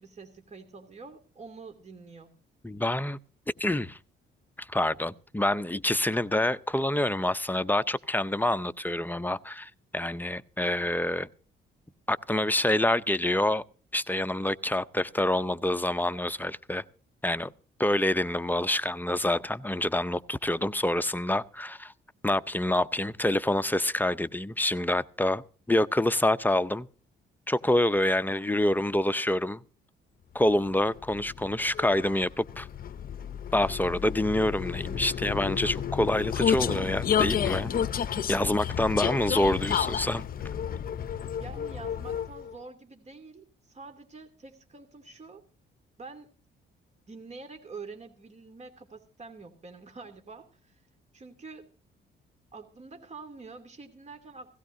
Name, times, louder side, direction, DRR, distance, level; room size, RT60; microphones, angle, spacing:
voice 1, 0.0-2.3 41.4-45.4 46.0-46.3 47.1-50.8 51.1-51.7 52.5-54.6, right 4 dB, 35° right, 2.6 m, -46 dB
voice 2, 2.6-3.2 3.6-4.0 4.6-11.3 12.1-13.6 13.9-16.8 17.2-17.5 17.8-21.9 22.2-26.9 27.5-29.6 30.3-32.7 33.5-37.7 38.3-40.2, left 1 dB, 10° left, 0.6 m, -27 dB
Vehicle, 30.7-42.5, left 8 dB, 45° left, 0.7 m, -31 dB
17.0 x 17.0 x 2.7 m
cardioid pair, 90°, 20 cm